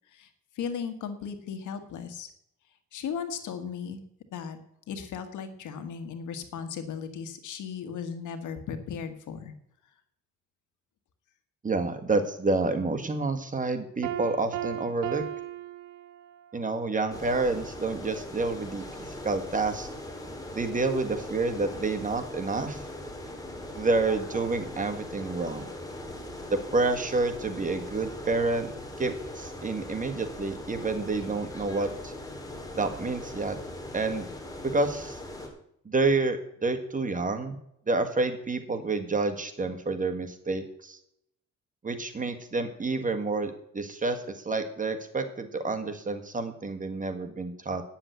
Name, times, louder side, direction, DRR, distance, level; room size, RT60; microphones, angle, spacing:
voice 1, 0.6-2.3 2.9-4.0 4.3-4.6 4.9-9.5, left 7 dB, 80° left, 8 dB, 1.7 m, -36 dB
voice 2, 11.6-15.2 16.5-19.9 20.5-22.8 23.8-25.7 26.5-28.7 29.0-32.1 32.8-33.6 33.9-34.3 34.6-35.2 35.9-37.6 37.9-41.0 41.8-47.8, right 3 dB, 25° right, 6 dB, 1.7 m, -29 dB
Piano, 14.0-16.6, right 11 dB, 85° right, 0.8 m, -36 dB
sound 1, 17.1-35.5, left 1 dB, 10° left, 3.1 m, -40 dB
9.8 x 7.3 x 8.2 m, 0.74 s
cardioid pair, 90°, 30 cm